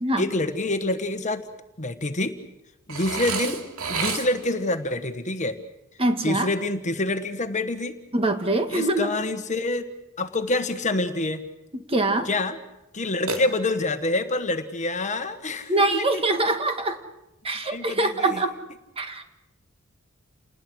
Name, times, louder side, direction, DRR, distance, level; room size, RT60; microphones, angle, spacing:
voice 1, 0.2-1.5 1.8-2.4 2.9-3.6 3.9-5.6 6.2-8.0 8.7-9.8 10.2-11.4 12.2-12.6 12.9-16.2 17.6-18.4, left 2 dB, 35° left, 8 dB, 1.3 m, -27 dB
Burping eructation, 2.9-4.6 13.3-14.1, right 4 dB, 75° right, 2.6 m, -30 dB
voice 2, 6.0-6.5 8.1-9.1 11.9-12.3 15.7-17.0 17.4-18.5 19.0-19.3, right 2 dB, 25° right, 7 dB, 1.8 m, -23 dB
29.0 x 20.0 x 6.3 m, 0.93 s
head